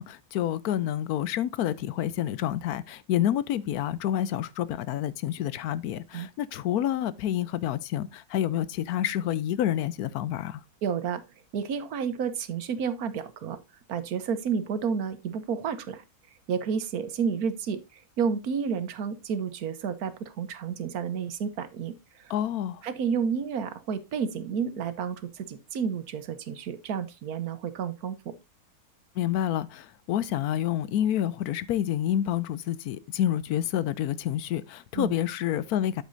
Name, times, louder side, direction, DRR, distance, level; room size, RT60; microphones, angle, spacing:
voice 1, 0.0-10.6 22.3-22.8 29.2-36.0, left 11 dB, 75° left, 1.1 m, -28 dB
voice 2, 10.8-11.2 11.5-13.6 13.9-16.0 16.5-22.3 22.8-28.3 34.9-35.1, right 6 dB, 75° right, 1.4 m, -31 dB
8.2 x 8.1 x 2.6 m
omnidirectional pair, 1.6 m